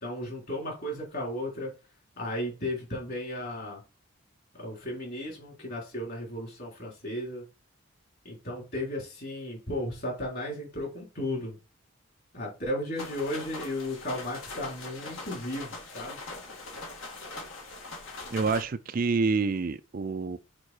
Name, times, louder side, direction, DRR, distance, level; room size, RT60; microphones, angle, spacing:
voice 1, 0.0-1.7 2.2-3.8 4.6-7.4 8.2-11.6 12.3-16.2, left 1 dB, 50° left, 3.9 m, -35 dB
sound 1, 13.0-18.6, left 3 dB, 75° left, 2.1 m, -41 dB
voice 2, 18.3-20.4, right 4 dB, 45° right, 0.4 m, -27 dB
6.5 x 5.1 x 4.4 m
head